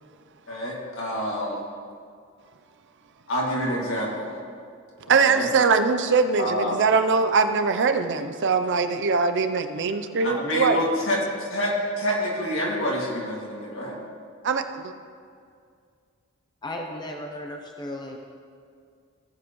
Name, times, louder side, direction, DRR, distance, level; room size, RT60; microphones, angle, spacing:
voice 1, 0.5-1.6 3.3-4.3 5.1-5.5 6.4-6.8 10.2-14.0, equal, 65° left, -3 dB, 2.3 m, -27 dB
voice 2, 5.1-10.9 14.4-14.9, right 5 dB, 60° right, 8 dB, 0.6 m, -22 dB
voice 3, 16.6-18.2, left 1 dB, 20° left, 1 dB, 0.7 m, -35 dB
17.5 x 7.3 x 3.1 m, 2.2 s
head